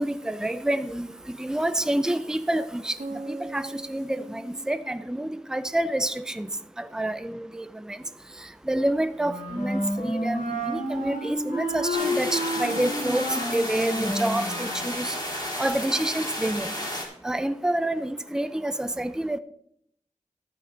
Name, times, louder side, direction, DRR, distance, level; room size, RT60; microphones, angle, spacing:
voice 1, 0.0-3.0 3.3-6.5 6.8-8.0 8.7-13.3 13.5-15.2 15.6-16.7 17.2-19.4, right 1 dB, 5° right, 11 dB, 0.5 m, -28 dB
sound 1, 3.0-6.9, right 2 dB, 60° right, 1.2 m, -41 dB
Wind instrument woodwind instrument, 9.2-14.9, equal, 85° left, 3.6 m, -30 dB
sound 2, 11.9-17.1, left 1 dB, 35° left, 3.4 m, -32 dB
12.0 x 8.9 x 3.9 m, 0.70 s
wide cardioid pair, 55°, 13 cm